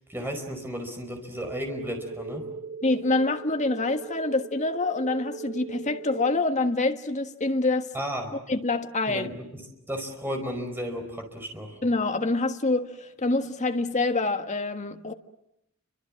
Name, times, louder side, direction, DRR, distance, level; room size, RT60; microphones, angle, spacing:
voice 1, 0.1-2.4 7.9-8.4 9.1-9.6 9.9-11.8, equal, 10° right, 4.8 m, -34 dB
sound 1, 1.4-6.4, right 4 dB, 60° right, 3.1 m, -40 dB
voice 2, 2.8-7.9 8.5-9.3 11.8-15.1, left 2 dB, 35° left, 1.4 m, -26 dB
29.5 x 25.0 x 7.5 m
head